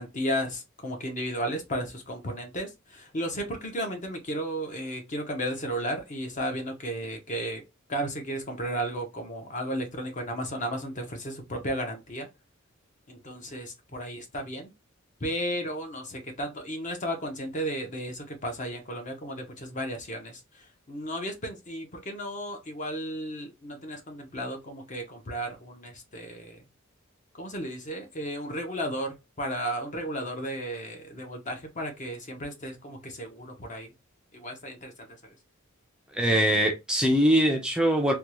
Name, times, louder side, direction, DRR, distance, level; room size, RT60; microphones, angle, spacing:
voice 1, 0.0-7.6 7.9-12.3 13.1-14.7 15.2-20.4 20.9-26.6 27.4-33.9 34.3-34.9, equal, 35° left, 0.9 m, -34 dB
voice 2, 36.1-38.1, equal, 5° right, 0.4 m, -22 dB
3.5 x 2.3 x 2.9 m
head